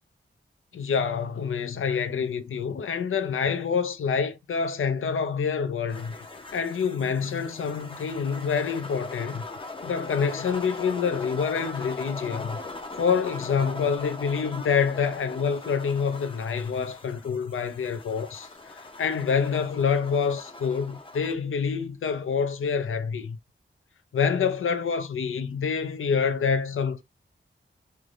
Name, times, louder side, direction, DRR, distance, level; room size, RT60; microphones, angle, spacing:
voice 1, 0.7-6.2 6.5-9.4 9.8-12.6 13.0-23.4 24.1-27.0, left 6 dB, 85° left, 0.5 m, -27 dB
sound 1, 5.9-21.4, left 2 dB, 25° left, 0.5 m, -40 dB
3.2 x 2.1 x 2.4 m
wide cardioid pair, 135°, 21 cm